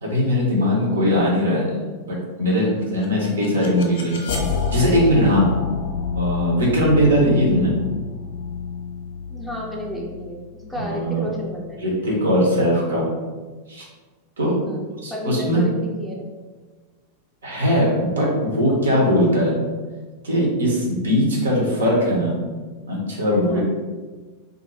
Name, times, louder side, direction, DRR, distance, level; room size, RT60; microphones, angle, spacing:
voice 1, 0.0-4.2 4.7-5.5 6.1-7.7 10.8-11.3 11.8-13.1 13.7-13.8 14.4-14.5 15.0-15.6 17.4-19.6 20.2-22.4 22.9-23.6, equal, 70° right, -3 dB, 0.7 m, -20 dB
sound 1, 2.8-11.8, left 6 dB, 55° left, 0.4 m, -29 dB
voice 2, 9.3-11.8 14.5-14.8 15.1-16.2 23.5-23.6, equal, 5° right, -3 dB, 0.5 m, -31 dB
2.4 x 2.1 x 2.9 m, 1.4 s
figure-of-eight pair, 90°, 0 cm